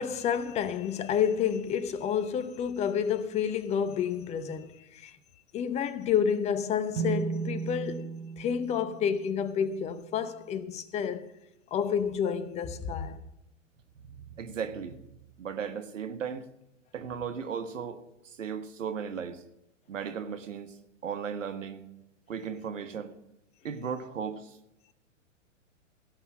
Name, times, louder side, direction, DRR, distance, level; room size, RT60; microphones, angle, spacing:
voice 1, 0.0-5.2 5.5-8.1 8.4-11.3 11.7-13.2, left 8 dB, 15° left, 0.7 m, -29 dB
sound 1, 6.9-10.5, right 6 dB, 50° right, 1.3 m, -36 dB
voice 2, 14.0-15.0 15.4-16.4 16.9-18.0 18.4-19.4 19.9-20.7 21.0-21.8 22.3-23.1 23.6-24.5, right 7 dB, 70° right, 1.5 m, -36 dB
17.0 x 5.7 x 7.5 m
figure-of-eight pair, 115°, 39 cm